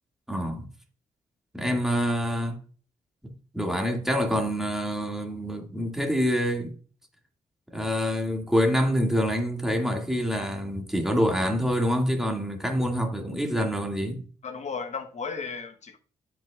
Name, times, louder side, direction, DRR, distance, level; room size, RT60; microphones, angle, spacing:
voice 1, 0.3-0.7 1.5-2.6 3.2-6.7 7.7-14.2, equal, 5° right, 2.1 m, -26 dB
voice 2, 14.4-16.0, left 5 dB, 50° left, 1.1 m, -34 dB
12.0 x 5.4 x 2.4 m
cardioid pair, 65°, 14 cm